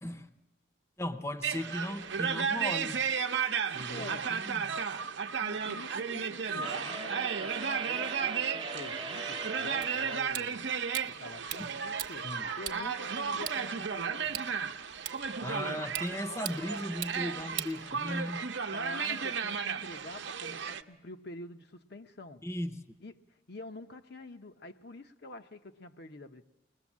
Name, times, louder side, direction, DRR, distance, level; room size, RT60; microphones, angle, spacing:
voice 1, 1.0-3.0 3.7-5.1 11.6-11.7 12.2-12.5 15.4-18.4 22.4-22.8, left 1 dB, 15° left, 0.7 m, -37 dB
sound 1, 1.4-20.8, right 6 dB, 60° right, 0.8 m, -34 dB
voice 2, 3.7-4.4 5.4-10.8 11.2-12.3 12.6-14.3 17.7-18.2 18.7-22.5 23.0-26.5, left 2 dB, 55° left, 0.8 m, -47 dB
sound 2, 6.6-10.2, right 4 dB, 25° right, 0.7 m, -39 dB
sound 3, 9.8-18.4, right 10 dB, 40° right, 1.2 m, -44 dB
21.5 x 21.0 x 7.3 m
head